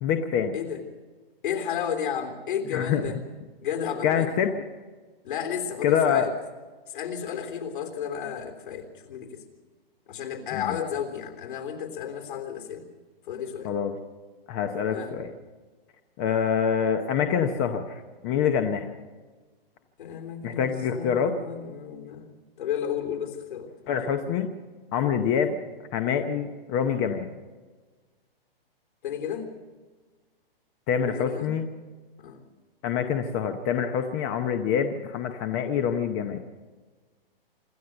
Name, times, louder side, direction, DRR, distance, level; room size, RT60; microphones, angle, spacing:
voice 1, 0.0-0.5 2.7-3.0 4.0-4.5 5.8-6.3 10.5-10.8 13.6-13.9 14.5-15.3 16.2-18.9 20.4-21.4 23.9-24.5 24.9-25.6 25.9-27.3 30.9-31.7 32.8-36.4, left 7 dB, 20° left, 7 dB, 0.7 m, -26 dB
voice 2, 1.4-3.2 3.6-4.3 5.2-6.3 6.9-9.4 10.1-12.8 13.3-13.7 14.9-15.1 20.0-24.0 29.0-29.5 31.1-31.5 32.2-32.4, left 8 dB, 60° left, 4 dB, 3.6 m, -33 dB
26.0 x 13.0 x 7.8 m, 1.4 s
hypercardioid pair, 160°, 30 cm